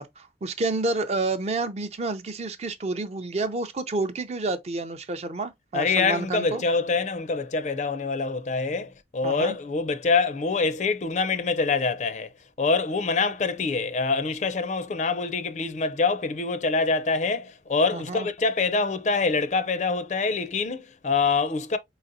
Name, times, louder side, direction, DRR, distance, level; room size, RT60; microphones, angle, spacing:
voice 1, 0.0-6.6 9.2-9.6 17.9-18.3, right 3 dB, 35° right, 0.4 m, -29 dB
voice 2, 5.7-12.3 12.6-21.8, left 4 dB, 40° left, 0.4 m, -25 dB
4.1 x 4.0 x 2.5 m
head